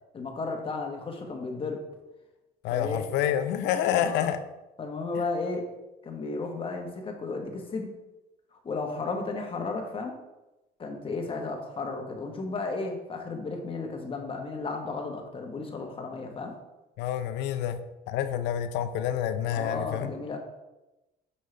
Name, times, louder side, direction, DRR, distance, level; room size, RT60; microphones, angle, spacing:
voice 1, 0.1-1.8 2.7-3.1 4.0-4.3 4.8-5.6 6.0-7.9 8.6-10.1 10.8-16.5 19.5-20.4, left 3 dB, 30° left, 3 dB, 1.1 m, -34 dB
voice 2, 2.6-4.4 17.0-17.8 18.1-20.1, left 10 dB, 90° left, 10 dB, 0.5 m, -28 dB
6.4 x 5.4 x 3.2 m, 1.0 s
cardioid pair, 110°, 17 cm